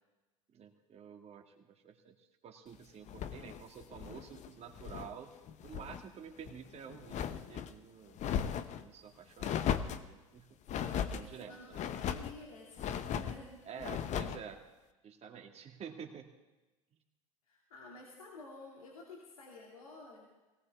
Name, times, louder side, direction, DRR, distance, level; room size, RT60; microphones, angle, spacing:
voice 1, 0.5-2.1 2.4-5.3 5.6-8.2 8.8-10.6 10.9-11.8 13.7-14.6 15.0-16.3, right 7 dB, 35° right, 4 dB, 2.2 m, -50 dB
sound 1, 3.1-5.1 5.5-6.0 6.4-7.7 8.2-8.8 9.4-10.1 10.7-11.3 11.7-12.4 12.8-13.4 13.8-14.4, left 9 dB, 40° left, 0.9 m, -37 dB
voice 2, 10.6-13.9 17.5-20.3, left 2 dB, 85° left, -2 dB, 2.6 m, -52 dB
18.0 x 18.0 x 3.6 m, 1.1 s
hypercardioid pair, 80°, 18 cm